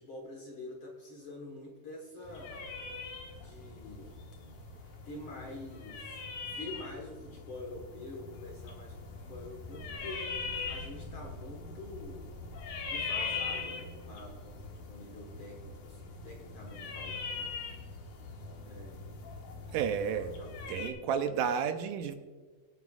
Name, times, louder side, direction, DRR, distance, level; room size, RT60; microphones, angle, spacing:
voice 1, 0.0-2.7 3.4-4.1 5.0-12.3 12.9-17.5 18.7-19.1 19.9-21.0, left 2 dB, 50° left, 0 dB, 1.7 m, -47 dB
sound 1, 2.3-20.9, left 4 dB, 70° left, 2.9 m, -41 dB
voice 2, 19.7-20.3 20.7-22.1, right 7 dB, 80° right, 8 dB, 2.2 m, -31 dB
24.0 x 8.3 x 2.4 m, 1.4 s
omnidirectional pair, 3.9 m